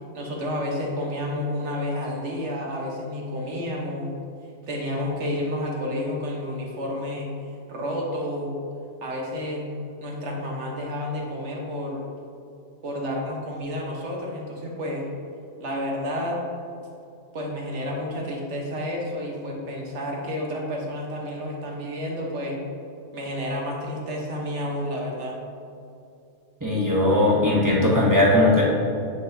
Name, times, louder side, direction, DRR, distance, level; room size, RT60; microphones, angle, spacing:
voice 1, 0.1-4.1 4.7-7.3 7.7-8.6 9.0-9.7 10.0-12.0 12.8-15.1 15.6-16.4 17.3-22.6 23.1-25.3, left 1 dB, 90° right, -1 dB, 1.4 m, -30 dB
voice 2, 26.6-28.6, left 1 dB, 15° right, -7 dB, 1.2 m, -19 dB
9.7 x 3.8 x 2.7 m, 2.6 s
omnidirectional pair, 1.2 m